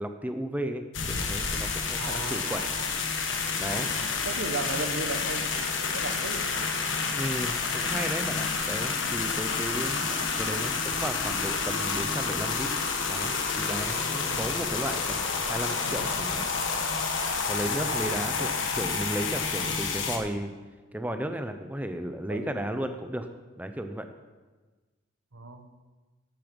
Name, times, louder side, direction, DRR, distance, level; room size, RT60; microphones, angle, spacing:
voice 1, 0.0-2.7 3.6-3.9 7.1-12.7 13.1-16.5 17.5-20.5 20.9-23.3 23.6-24.1, right 1 dB, 10° right, 7 dB, 0.7 m, -34 dB
sound 1, 0.9-20.2, left 5 dB, 70° left, 1.2 m, -29 dB
voice 2, 1.9-2.9 3.6-6.7 14.2-14.6 17.8-18.1 18.4-18.6 22.3-22.6 25.3-25.7, right 3 dB, 80° right, 7 dB, 1.2 m, -37 dB
12.0 x 8.9 x 5.3 m, 1.3 s
head